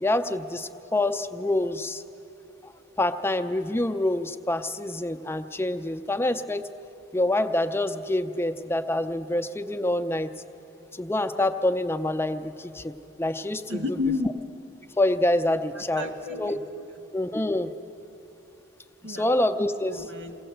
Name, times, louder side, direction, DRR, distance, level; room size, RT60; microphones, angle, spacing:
voice 1, 0.0-2.0 2.6-2.7 3.0-6.6 7.1-10.3 10.9-13.8 15.0-16.1 16.4-16.5 17.1-17.7 19.0-20.0, left 1 dB, 15° left, 8 dB, 0.5 m, -26 dB
voice 2, 13.7-14.3 15.7-16.9 19.0-19.3 19.9-20.4, left 3 dB, 85° right, 5 dB, 1.7 m, -31 dB
22.0 x 17.5 x 7.9 m, 2.9 s
head